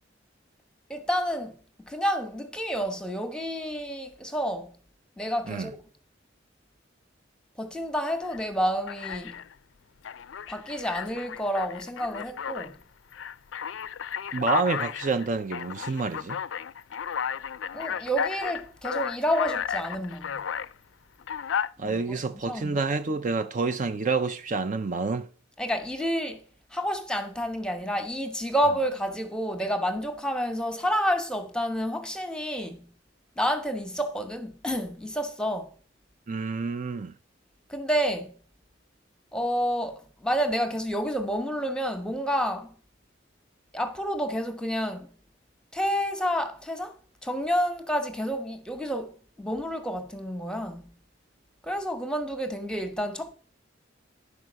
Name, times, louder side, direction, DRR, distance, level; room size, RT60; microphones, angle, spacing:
voice 1, 0.9-1.6 1.8-4.7 5.2-5.8 7.6-9.4 10.5-12.7 17.7-20.4 21.8-22.2 22.5-22.8 25.6-26.4 26.7-32.9 33.4-35.7 37.7-38.3 39.3-42.7 43.7-45.1 45.7-47.0 47.2-50.9 51.6-53.3, equal, 5° left, 1.0 m, -29 dB
Alarm, 8.2-8.4 8.9-9.5 10.0-12.7 13.1-20.7 21.2-21.7, left 8 dB, 80° left, 0.4 m, -33 dB
voice 2, 14.3-16.4 21.8-25.3 36.3-37.1, right 4 dB, 40° right, 0.5 m, -28 dB
11.0 x 4.8 x 6.2 m
head